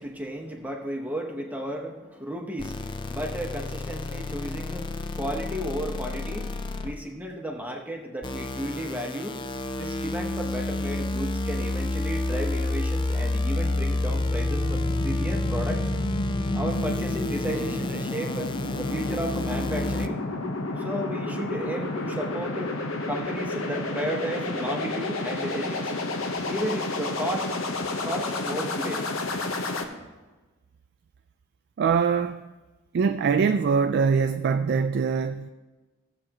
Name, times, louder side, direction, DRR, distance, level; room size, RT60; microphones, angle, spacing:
voice 1, 0.0-9.4 9.7-15.8 16.5-20.2 20.8-22.7 23.1-25.9 26.4-27.5 28.0-29.0, right 1 dB, 10° right, 1 dB, 0.9 m, -33 dB
sound 1, 2.6-7.1 8.2-20.1, left 2 dB, 25° left, 0.4 m, -30 dB
sound 2, 13.4-29.8, left 2 dB, 75° left, 0.9 m, -31 dB
voice 2, 31.8-32.5 32.9-35.5, right 5 dB, 50° right, 8 dB, 0.3 m, -23 dB
16.0 x 7.6 x 2.9 m, 1.2 s
head